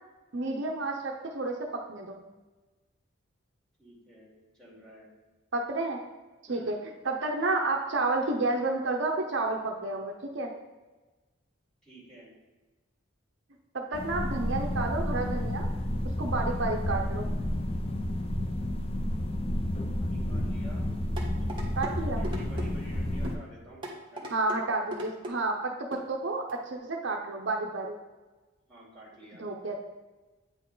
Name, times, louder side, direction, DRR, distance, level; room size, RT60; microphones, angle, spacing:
voice 1, 0.3-2.2 5.5-6.0 6.5-6.8 7.0-10.5 13.7-15.7 16.2-17.3 21.8-22.2 24.3-28.0 29.4-29.7, right 3 dB, 60° right, 2 dB, 0.7 m, -30 dB
voice 2, 3.8-4.3 4.6-5.1 6.5-6.8 11.8-12.3 20.0-20.9 21.2-21.5 21.9-23.8 24.1-24.3 28.7-29.4, right 1 dB, 5° left, -7 dB, 2.5 m, -50 dB
sound 1, 13.9-23.4, left 1 dB, 30° left, 0.5 m, -31 dB
sound 2, 21.2-21.9 22.2-22.7 23.2-23.4 23.8-24.6 24.9-25.4 25.9-26.1 26.5-26.6, equal, 25° right, 1.2 m, -38 dB
8.9 x 4.4 x 3.9 m, 1.2 s
head